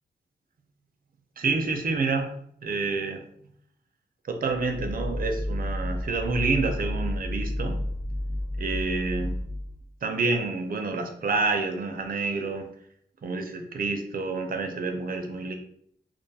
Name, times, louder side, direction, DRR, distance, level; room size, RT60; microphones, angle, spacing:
voice 1, 1.4-2.3 2.6-3.2 4.3-7.8 8.6-9.3 10.0-12.7 13.2-15.6, right 3 dB, 50° right, 5 dB, 0.5 m, -28 dB
sound 1, 4.4-9.9, left 1 dB, 15° left, 0.4 m, -31 dB
2.4 x 2.3 x 2.7 m, 0.68 s
cardioid pair, 70°, 19 cm